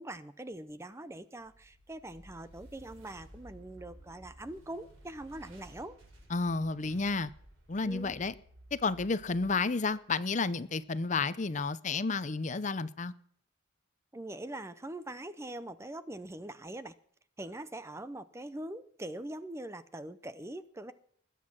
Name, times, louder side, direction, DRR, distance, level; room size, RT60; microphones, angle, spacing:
voice 1, 0.0-6.0 7.8-8.1 14.1-16.9 17.4-20.9, right 1 dB, 15° right, 0.5 m, -43 dB
sound 1, 1.4-10.5, equal, 90° right, 6.0 m, -56 dB
voice 2, 6.3-7.3 7.7-8.3 8.7-13.1, left 4 dB, 35° left, 0.6 m, -31 dB
20.5 x 8.3 x 6.0 m
head